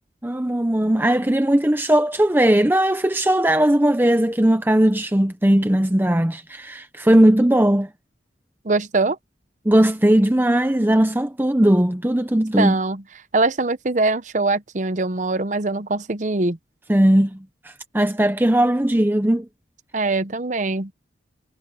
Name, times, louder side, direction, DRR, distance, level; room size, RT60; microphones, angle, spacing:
voice 1, 0.2-7.9 9.7-12.7 16.9-17.4 17.6-19.5, right 1 dB, 10° right, 0.7 m, -18 dB
voice 2, 8.6-9.2 12.6-13.0 13.3-16.6 19.9-20.9, right 3 dB, 40° right, 0.8 m, -22 dB
head